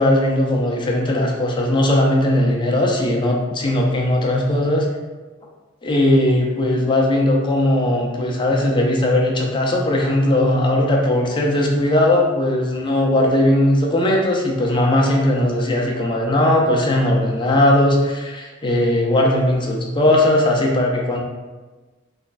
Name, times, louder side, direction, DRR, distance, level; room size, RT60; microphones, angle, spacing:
voice 1, 0.0-4.9 5.8-21.2, left 1 dB, 25° left, -1 dB, 0.5 m, -18 dB
3.3 x 3.0 x 2.5 m, 1.3 s
head